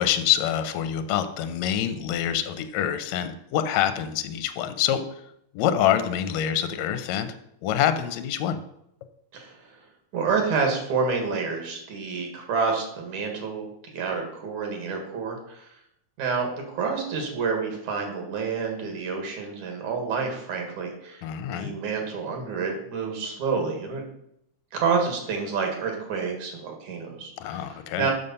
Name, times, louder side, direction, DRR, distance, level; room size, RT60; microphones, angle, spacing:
voice 1, 0.0-5.0 5.5-7.3 7.6-8.6 21.2-21.7 27.4-28.1, left 10 dB, 75° left, 10 dB, 1.9 m, -26 dB
voice 2, 9.3-9.8 10.1-15.7 16.2-21.3 21.5-24.0 24.7-28.1, right 5 dB, 80° right, 2 dB, 3.2 m, -28 dB
7.2 x 6.6 x 5.5 m, 0.77 s
omnidirectional pair, 3.3 m